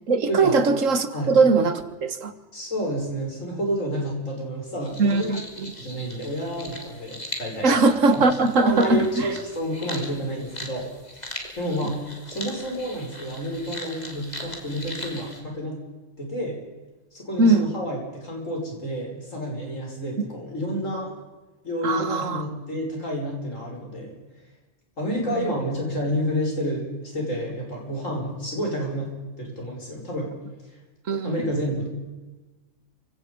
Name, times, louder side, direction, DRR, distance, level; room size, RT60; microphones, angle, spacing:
voice 1, 0.1-2.3 5.0-5.8 7.6-9.3 17.4-17.7 21.8-22.5 25.4-25.5 31.1-31.4, right 3 dB, 85° right, 11 dB, 1.9 m, -20 dB
voice 2, 2.5-5.4 5.8-7.7 8.1-8.2 8.6-10.9 11.1-11.2 11.6-12.0 12.3-15.8 16.2-16.6 17.1-21.1 21.6-24.1 25.0-29.1 29.4-30.3 31.2-31.9, equal, 90° left, -1 dB, 6.4 m, -29 dB
sound 1, 4.8-15.4, left 1 dB, 35° left, 3.5 m, -39 dB
29.0 x 17.0 x 5.4 m, 1.2 s
omnidirectional pair, 1.3 m